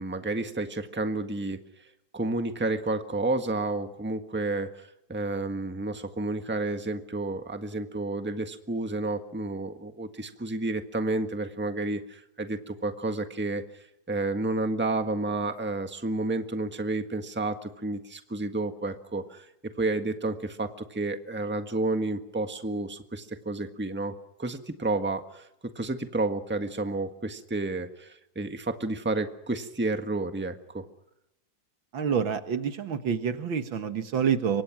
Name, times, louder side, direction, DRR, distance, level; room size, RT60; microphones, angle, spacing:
voice 1, 0.0-1.6 2.1-13.6 14.1-19.5 19.8-24.1 24.4-30.8, right 2 dB, 5° right, 7 dB, 1.4 m, -30 dB
voice 2, 31.9-34.6, right 7 dB, 80° right, 9 dB, 2.3 m, -27 dB
27.5 x 24.0 x 6.1 m, 0.83 s
omnidirectional pair, 2.1 m